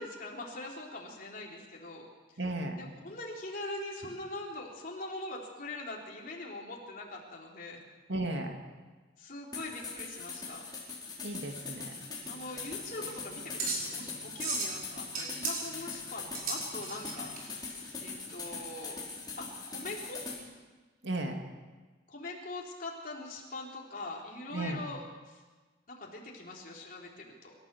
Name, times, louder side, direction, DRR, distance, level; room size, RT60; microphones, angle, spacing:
voice 1, 0.0-2.1 2.8-7.8 9.2-10.6 12.3-19.0 19.4-20.2 22.1-25.4 25.9-27.5, left 2 dB, 45° left, -2 dB, 3.9 m, -42 dB
voice 2, 2.4-2.8 8.1-8.6 11.2-11.9 21.0-21.4 24.5-24.9, right 2 dB, 70° right, 3 dB, 2.4 m, -34 dB
sound 1, 9.5-20.4, left 4 dB, 20° left, 5.2 m, -41 dB
sound 2, 12.2-17.4, right 3 dB, 50° right, 5.4 m, -37 dB
26.5 x 14.0 x 7.1 m, 1.3 s
head